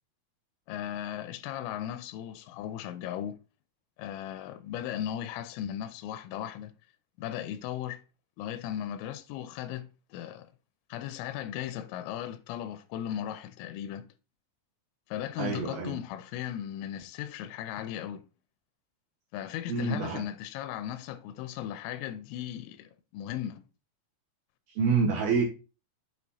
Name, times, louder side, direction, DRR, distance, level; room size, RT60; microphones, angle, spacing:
voice 1, 0.7-3.4 4.0-6.7 7.2-8.0 8.4-10.5 10.9-14.0 15.1-18.3 19.3-23.6, left 11 dB, 90° left, 3.2 m, -37 dB
voice 2, 15.4-15.9 19.7-20.2 24.8-25.4, right 5 dB, 65° right, 2.5 m, -27 dB
8.7 x 3.7 x 4.1 m
omnidirectional pair, 5.6 m